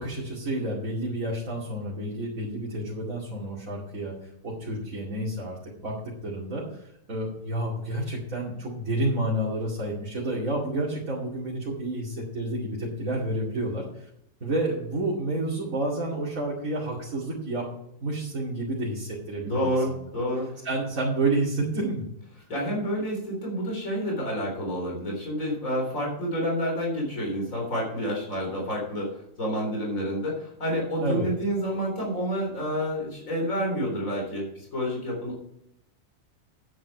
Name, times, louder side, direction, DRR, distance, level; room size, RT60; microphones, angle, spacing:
voice 1, 0.0-4.1 4.4-5.9 6.2-14.1 14.4-17.7 18.0-20.1 20.6-22.1 31.0-31.3, right 1 dB, 85° right, -5 dB, 3.0 m, -30 dB
voice 2, 19.4-20.6 22.5-35.4, equal, 75° left, -2 dB, 4.2 m, -29 dB
9.7 x 9.1 x 4.7 m, 0.77 s
omnidirectional pair, 1.4 m